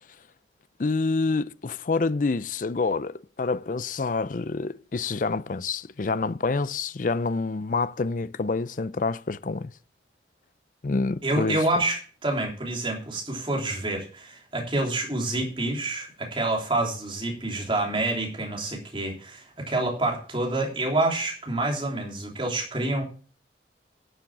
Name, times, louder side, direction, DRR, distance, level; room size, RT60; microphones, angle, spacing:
voice 1, 0.8-9.7 10.8-11.6, left 3 dB, 45° left, 0.5 m, -27 dB
voice 2, 11.2-23.0, right 2 dB, 30° right, 3.4 m, -27 dB
11.5 x 7.3 x 6.0 m
head